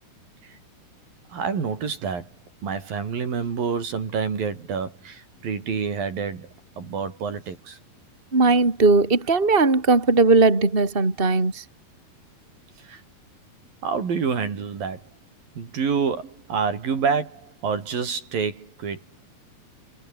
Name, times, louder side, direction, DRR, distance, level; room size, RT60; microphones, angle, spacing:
voice 1, 1.3-2.3 2.6-6.5 6.8-7.8 12.9-13.0 13.8-15.0 15.6-19.0, right 6 dB, 65° right, 5.8 m, -27 dB
voice 2, 8.3-11.6, right 3 dB, 15° right, 3.6 m, -18 dB
omnidirectional pair, 4.4 m